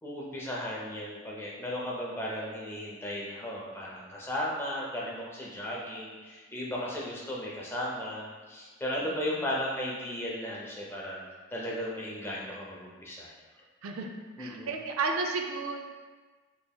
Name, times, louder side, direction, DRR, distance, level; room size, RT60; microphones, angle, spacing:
voice 1, 0.0-11.2 11.5-13.3 14.4-14.7, left 1 dB, 10° left, -4 dB, 0.4 m, -35 dB
voice 2, 9.0-9.4 13.8-14.1 14.4-15.8, right 4 dB, 80° right, 3 dB, 0.4 m, -33 dB
3.4 x 3.4 x 2.3 m, 1.3 s
head